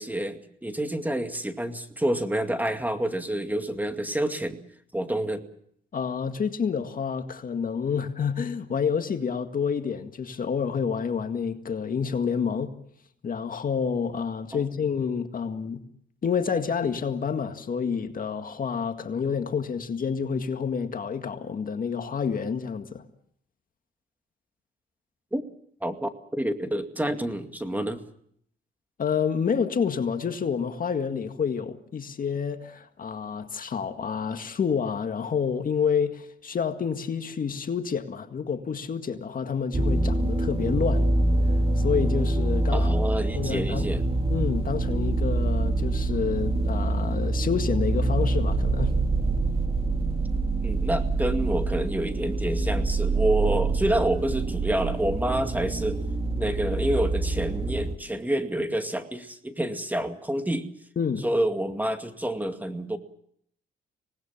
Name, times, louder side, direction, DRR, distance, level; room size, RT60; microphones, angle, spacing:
voice 1, 0.0-4.6 4.9-5.4 14.5-14.6 25.3-25.4 25.8-28.0 42.7-44.0 50.6-56.0 56.4-60.7 61.2-63.0, right 1 dB, 10° right, 2.2 m, -28 dB
voice 2, 5.9-12.7 13.2-15.8 16.2-23.0 29.0-41.1 41.7-42.9 43.3-43.9 44.3-48.9 61.0-61.2, left 6 dB, 45° left, 1.9 m, -28 dB
sound 1, 39.7-58.0, right 2 dB, 30° right, 2.6 m, -25 dB
25.5 x 19.5 x 7.4 m
cardioid pair, 90°, 20 cm